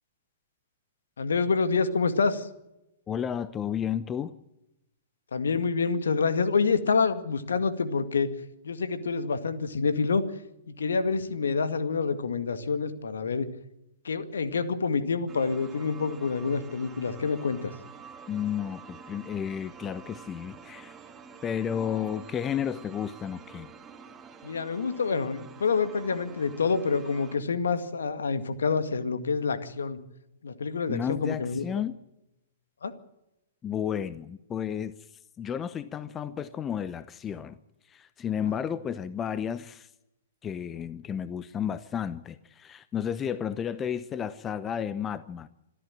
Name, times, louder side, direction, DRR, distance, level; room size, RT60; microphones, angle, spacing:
voice 1, 1.2-2.5 5.3-8.3 8.6-10.2 10.7-13.5 14.0-17.7 24.4-30.0 30.4-31.7 32.8-32.9, left 5 dB, 70° left, 10 dB, 2.0 m, -27 dB
voice 2, 3.1-4.3 18.3-20.9 21.4-23.7 30.9-31.9 33.6-34.9 35.4-37.6 37.9-39.9 40.4-45.5, left 8 dB, 20° left, 15 dB, 0.9 m, -32 dB
sound 1, 15.3-27.4, right 5 dB, 15° right, 2.3 m, -48 dB
26.0 x 13.5 x 7.6 m, 0.90 s
figure-of-eight pair, 115°, 0 cm